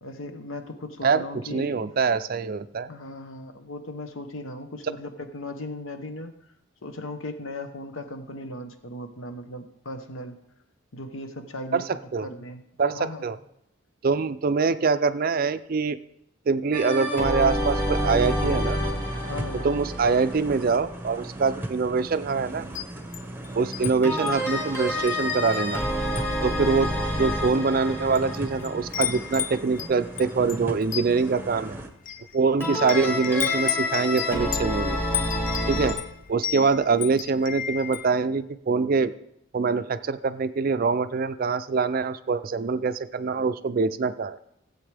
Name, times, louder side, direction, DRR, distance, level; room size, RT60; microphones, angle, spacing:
voice 1, 0.0-1.9 2.9-6.3 6.8-10.4 10.9-11.9 12.2-12.6 12.9-13.3 19.3-19.7, left 1 dB, 75° left, 8 dB, 1.0 m, -37 dB
voice 2, 1.5-2.9 11.7-11.8 12.1-12.3 12.8-13.4 14.0-16.0 16.5-18.8 19.6-22.7 23.5-25.8 26.4-26.9 27.2-31.8 32.3-35.0 35.7-36.0 36.3-39.1 39.5-44.4, right 4 dB, 45° right, 12 dB, 0.4 m, -24 dB
sound 1, 16.7-21.5 24.0-29.8 32.6-35.9, left 1 dB, 10° left, 2.2 m, -29 dB
sound 2, 17.4-31.9, right 1 dB, 10° right, 0.8 m, -38 dB
Wind chime, 22.6-23.9 24.3-24.5 25.1-25.8 26.1-26.4 27.1-27.2 27.9-28.4 28.6-38.1, left 10 dB, 40° left, 0.3 m, -33 dB
16.5 x 8.0 x 3.4 m, 0.80 s
head